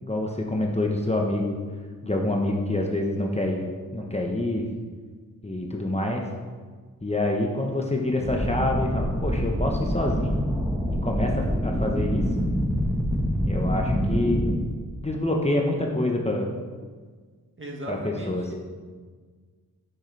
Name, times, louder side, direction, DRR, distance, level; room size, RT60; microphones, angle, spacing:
voice 1, 0.0-1.6 2.0-3.6 3.9-4.7 5.4-6.3 7.0-10.4 10.9-12.5 13.4-14.4 15.0-16.5 17.9-18.5, left 1 dB, 15° left, 0 dB, 1.0 m, -26 dB
sound 1, 8.2-14.5, equal, 5° right, 1.3 m, -26 dB
voice 2, 17.6-18.5, equal, 35° right, 0 dB, 1.7 m, -36 dB
9.1 x 6.4 x 3.4 m, 1.5 s
cardioid pair, 55°, 37 cm